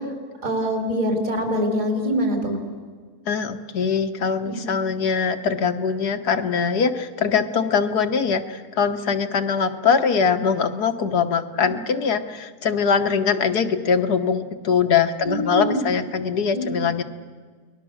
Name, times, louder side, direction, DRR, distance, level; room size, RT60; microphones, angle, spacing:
voice 1, 0.4-2.6 4.4-4.6 11.6-11.7 15.2-15.9 16.5-16.8, equal, 50° right, 3 dB, 5.1 m, -24 dB
voice 2, 3.3-17.0, left 6 dB, 70° left, 7 dB, 1.7 m, -22 dB
30.0 x 21.0 x 7.2 m, 1.6 s
omnidirectional pair, 1.7 m